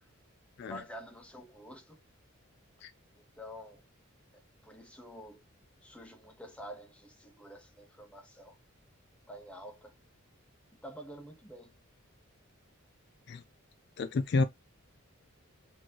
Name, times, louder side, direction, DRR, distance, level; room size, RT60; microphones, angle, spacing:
voice 1, 0.7-2.0 3.1-3.8 4.6-5.4 5.8-8.6 9.3-9.9 10.8-11.7, equal, 5° left, 1.0 m, -48 dB
voice 2, 14.0-14.4, left 3 dB, 50° left, 0.4 m, -29 dB
4.4 x 3.0 x 2.8 m
head